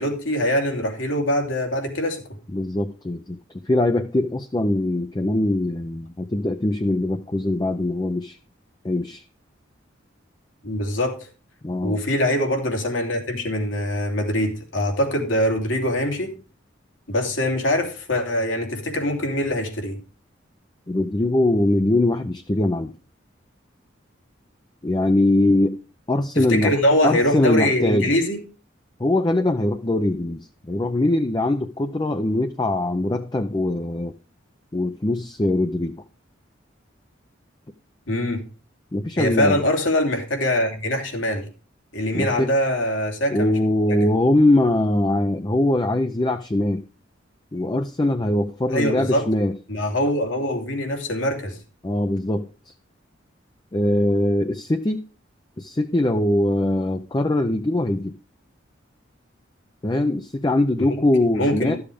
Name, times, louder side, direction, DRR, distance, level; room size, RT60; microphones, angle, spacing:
voice 1, 0.0-2.2 10.6-11.2 11.8-16.4 17.1-20.0 26.3-28.4 38.1-38.4 39.2-41.4 41.9-43.6 43.9-44.1 48.7-49.2 49.7-51.6 61.3-61.8, left 1 dB, 85° left, 3.0 m, -23 dB
voice 2, 2.5-8.4 8.8-9.2 11.6-12.0 20.9-22.9 24.8-25.8 26.1-26.8 27.0-28.1 29.0-34.1 34.7-36.0 38.9-39.6 42.1-42.5 43.3-46.8 47.5-49.5 51.8-52.7 53.7-55.0 55.6-58.1 59.8-61.7, left 1 dB, 20° left, 0.5 m, -22 dB
13.0 x 7.1 x 5.0 m
head